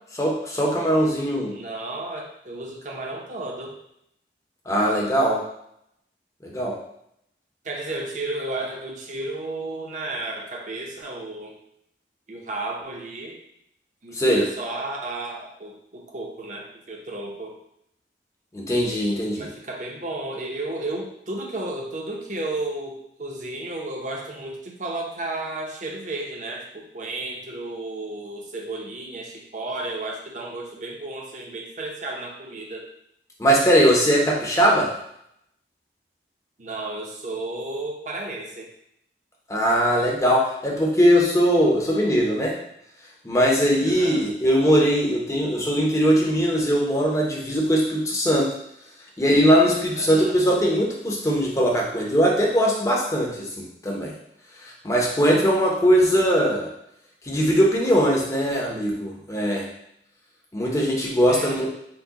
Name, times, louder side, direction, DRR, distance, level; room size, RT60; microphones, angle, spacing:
voice 1, 0.1-1.6 4.7-5.4 6.4-6.8 14.1-14.5 18.5-19.5 33.4-34.9 39.5-42.5 43.2-48.5 49.2-54.1 54.6-56.7 57.2-59.7 60.5-61.7, equal, 20° left, -2 dB, 0.7 m, -20 dB
voice 2, 1.5-3.8 7.6-11.5 12.3-13.4 14.0-17.6 19.3-32.9 36.6-38.7 43.8-44.2 50.0-50.4 61.3-61.7, right 2 dB, 45° right, -1 dB, 0.7 m, -33 dB
4.5 x 2.2 x 3.9 m, 0.76 s
head